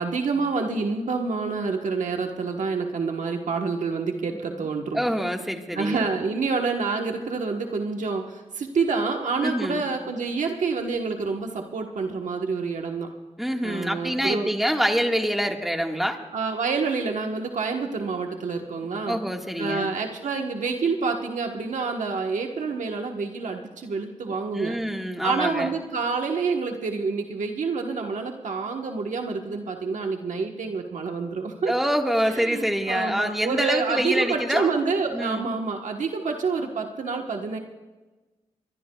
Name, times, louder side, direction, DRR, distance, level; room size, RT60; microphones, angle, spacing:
voice 1, 0.0-5.0 5.7-13.1 13.6-14.5 16.3-19.2 19.6-24.8 25.2-31.7 32.2-37.6, right 4 dB, 75° right, 3 dB, 1.2 m, -28 dB
voice 2, 4.9-6.0 9.4-9.8 13.4-16.2 19.1-19.9 24.3-25.7 31.7-34.7 35.1-35.5, equal, ahead, 2 dB, 1.6 m, -26 dB
23.0 x 22.0 x 2.3 m, 1.2 s
wide cardioid pair, 85°, 13 cm